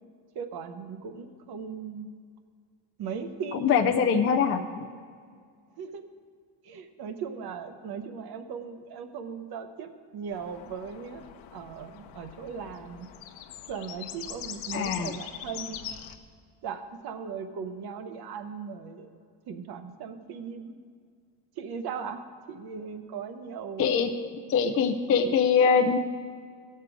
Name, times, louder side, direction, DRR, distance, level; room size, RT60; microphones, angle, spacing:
voice 1, 0.3-2.1 3.0-3.7 5.8-6.1 6.6-11.3 11.5-13.1 13.7-15.8 16.6-19.1 19.5-20.8 21.6-24.1, right 6 dB, 50° right, 9 dB, 0.9 m, -38 dB
voice 2, 3.5-4.9 14.7-15.1 23.8-24.1 24.5-26.0, left 6 dB, 30° left, 4 dB, 0.4 m, -23 dB
sound 1, 10.3-16.2, left 10 dB, 65° left, 0.9 m, -42 dB
16.5 x 6.7 x 4.9 m, 2.1 s
cardioid pair, 160°, 50 cm